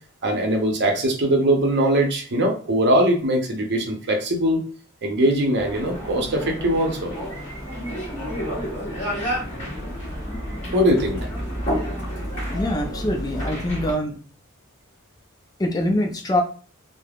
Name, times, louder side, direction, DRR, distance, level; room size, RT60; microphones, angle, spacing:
voice 1, 0.2-4.6 5.0-7.1 10.7-11.3, right 1 dB, 50° right, 3 dB, 0.7 m, -21 dB
sound 1, 5.6-13.9, equal, 35° left, 1.1 m, -30 dB
voice 2, 12.5-14.2 15.6-16.4, left 1 dB, 15° left, 2 dB, 0.4 m, -24 dB
3.3 x 2.0 x 2.3 m, 0.38 s
head